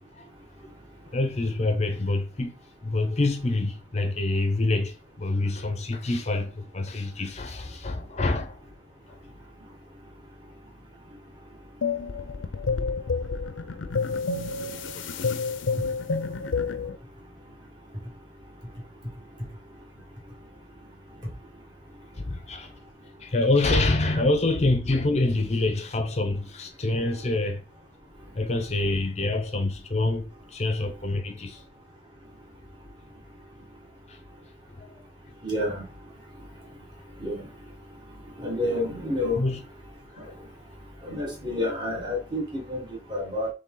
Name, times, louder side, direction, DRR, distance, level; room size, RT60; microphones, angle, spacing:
voice 1, 1.1-2.5 2.8-8.6 22.2-22.7 23.2-27.6 28.3-31.6 34.1-34.2 34.7-34.8 39.4-39.6, left 2 dB, 35° left, 0.6 m, -26 dB
sound 1, 11.8-17.0, left 4 dB, 85° left, 0.5 m, -29 dB
voice 2, 35.4-35.8 37.2-37.5 38.4-39.4 41.0-43.5, left 1 dB, 25° right, 1.6 m, -29 dB
4.0 x 3.3 x 3.8 m
head